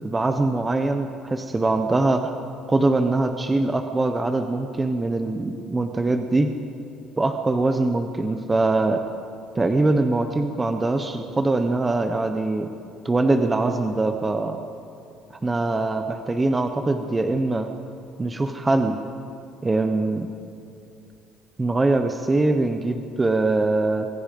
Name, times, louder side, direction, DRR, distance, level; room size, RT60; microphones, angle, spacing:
voice 1, 0.0-2.4 2.7-6.5 7.2-9.0 9.5-12.7 13.0-14.6 15.4-17.7 18.2-19.0 19.6-20.3 21.6-24.1, right 2 dB, 15° right, 6 dB, 0.9 m, -22 dB
25.0 x 20.0 x 5.3 m, 2.6 s
cardioid pair, 150°, 0 cm